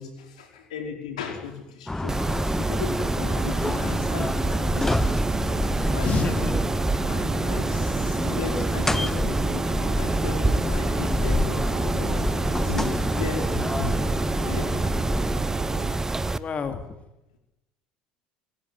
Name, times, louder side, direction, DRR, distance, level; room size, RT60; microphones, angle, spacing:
voice 1, 0.0-5.2 5.8-6.1 7.0-12.3 12.6-14.8, left 6 dB, 85° left, 4 dB, 4.8 m, -36 dB
sound 1, 1.9-15.4, left 2 dB, 10° left, 0.8 m, -29 dB
Mechanisms, 2.1-16.4, right 2 dB, 15° right, 1.2 m, -27 dB
sound 2, 2.6-16.0, right 8 dB, 45° right, 3.1 m, -37 dB
voice 2, 3.6-3.9 6.0-6.6 16.0-16.8, left 5 dB, 35° left, 7 dB, 2.6 m, -30 dB
27.0 x 15.5 x 9.6 m, 0.94 s
hypercardioid pair, 75°, 4 cm